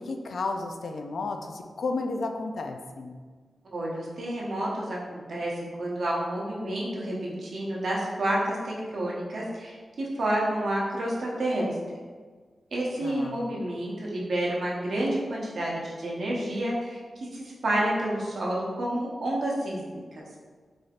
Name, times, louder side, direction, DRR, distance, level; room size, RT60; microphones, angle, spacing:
voice 1, 0.0-3.2 13.0-13.4, left 3 dB, 75° left, 5 dB, 0.3 m, -32 dB
voice 2, 3.7-11.8 12.7-19.8, right 1 dB, 70° right, -4 dB, 0.8 m, -29 dB
4.1 x 3.2 x 2.4 m, 1.5 s
wide cardioid pair, 130°, 0 cm